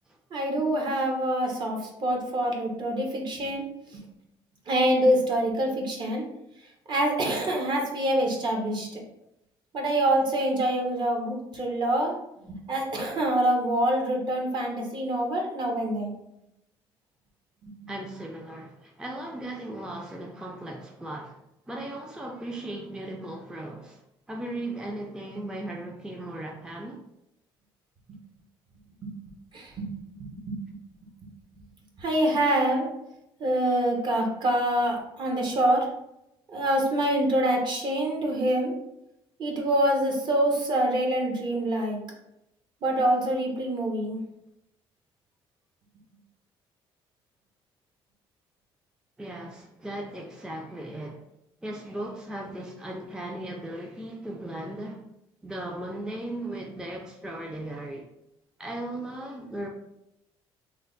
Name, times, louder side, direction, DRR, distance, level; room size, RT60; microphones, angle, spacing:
voice 1, 0.3-3.6 3.9-4.0 4.7-6.2 6.9-9.0 9.7-12.1 12.4-16.1 17.6-17.9 29.0-29.2 29.5-29.9 30.3-30.6 32.0-32.9 33.4-35.9 36.5-38.7 39.4-42.0 42.8-44.2, right 1 dB, 45° right, 1 dB, 0.9 m, -25 dB
voice 2, 17.9-21.4 21.7-24.0 24.3-27.0 49.2-51.2 51.6-55.0 55.4-58.1 58.6-59.7, right 1 dB, 5° right, 0 dB, 0.4 m, -37 dB
3.2 x 2.0 x 3.8 m, 0.84 s
cardioid pair, 100°, 10 cm